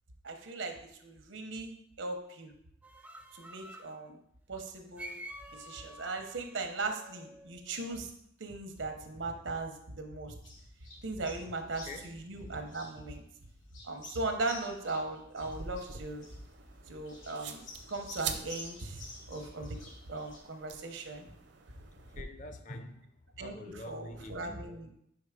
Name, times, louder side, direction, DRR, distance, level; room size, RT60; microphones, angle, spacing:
voice 1, 0.2-2.5 3.3-4.2 4.5-5.1 5.5-8.1 8.4-10.3 11.0-13.2 13.8-16.3 16.9-19.8 20.1-21.3 23.4-24.9, right 3 dB, 85° right, 5 dB, 1.0 m, -38 dB
sound 1, 2.8-4.0 5.0-8.0, right 1 dB, 10° right, 0.4 m, -49 dB
sound 2, 10.4-20.4, left 2 dB, 85° left, 1.4 m, -51 dB
voice 2, 11.8-12.2 21.9-23.1 23.3-24.7, left 2 dB, 40° left, 7 dB, 0.6 m, -46 dB
sound 3, 15.4-22.2, right 7 dB, 65° right, 0.6 m, -45 dB
5.1 x 4.7 x 4.9 m, 0.74 s
head